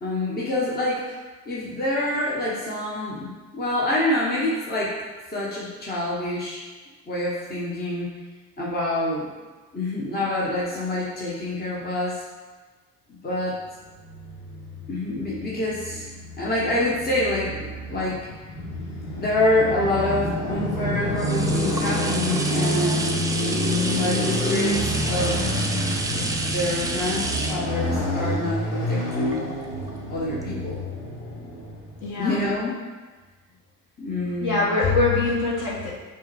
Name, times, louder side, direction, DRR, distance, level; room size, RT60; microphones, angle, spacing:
voice 1, 0.0-1.1 1.5-5.0 5.3-6.6 7.1-8.1 8.6-9.3 9.7-12.2 13.2-13.6 14.9-16.1 16.4-18.2 19.1-23.3 23.9-24.8 25.1-25.4 26.1-29.5 30.1-30.8 32.2-32.8 34.0-34.7, left 1 dB, 20° left, -5 dB, 0.9 m, -26 dB
Motorcycle, 13.9-32.1, equal, 85° left, 0.8 m, -28 dB
sound 1, 20.5-29.9 30.4-30.5, right 2 dB, 10° right, 0.4 m, -30 dB
voice 2, 32.0-32.4 34.4-35.9, left 3 dB, 45° left, -4 dB, 1.2 m, -23 dB
5.4 x 2.2 x 3.3 m, 1.3 s
figure-of-eight pair, 45°, 42 cm